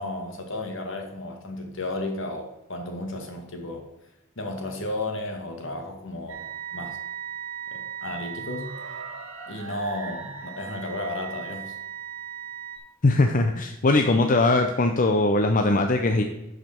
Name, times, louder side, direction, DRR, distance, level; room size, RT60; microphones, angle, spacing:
voice 1, 0.0-3.8 4.4-6.5 6.7-7.0 7.7-8.8 9.5-11.8, left 1 dB, 65° left, 3 dB, 1.9 m, -33 dB
sound 1, 6.3-12.8, right 7 dB, 85° right, 1.6 m, -37 dB
voice 2, 13.0-16.2, left 2 dB, 40° left, 5 dB, 0.6 m, -21 dB
11.5 x 5.0 x 4.5 m, 0.99 s
head